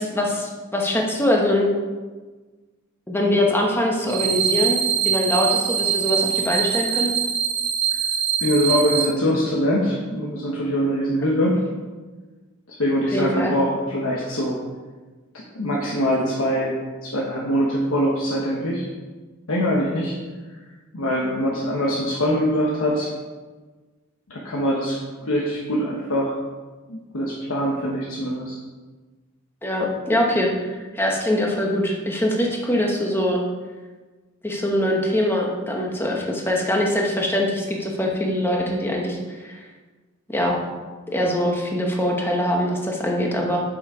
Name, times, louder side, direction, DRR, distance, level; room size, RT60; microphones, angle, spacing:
voice 1, 0.0-1.7 3.1-7.1 13.1-13.5 29.6-33.4 34.4-39.6 40.3-40.6 41.1-43.6, left 1 dB, 10° left, 0 dB, 1.0 m, -23 dB
sound 1, 4.1-9.1, right 8 dB, 70° right, 1.2 m, -23 dB
voice 2, 8.4-11.5 12.8-14.6 15.3-16.8 17.0-18.9 19.5-20.1 20.9-23.1 24.3-26.4 26.9-28.6, equal, 70° left, -4 dB, 1.1 m, -23 dB
6.9 x 6.3 x 4.9 m, 1.3 s
head